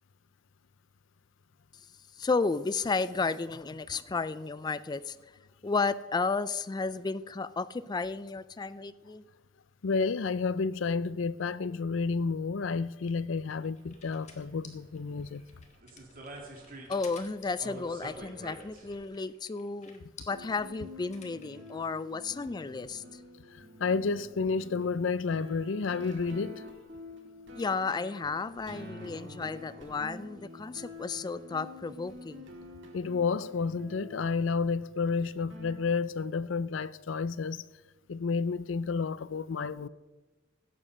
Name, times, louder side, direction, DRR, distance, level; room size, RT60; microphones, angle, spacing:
voice 1, 2.1-5.2 5.6-9.2 16.9-23.2 27.5-32.5, left 4 dB, 20° left, 0.3 m, -33 dB
voice 2, 9.8-15.5 23.5-26.6 32.9-37.6 38.1-39.9, left 4 dB, 85° left, 0.5 m, -31 dB
sound 1, 13.0-21.7, left 5 dB, 40° left, 1.7 m, -54 dB
sound 2, 13.8-19.0, right 1 dB, 50° right, 2.7 m, -47 dB
sound 3, 20.3-35.9, left 2 dB, 70° right, 2.0 m, -48 dB
16.5 x 7.3 x 6.6 m
head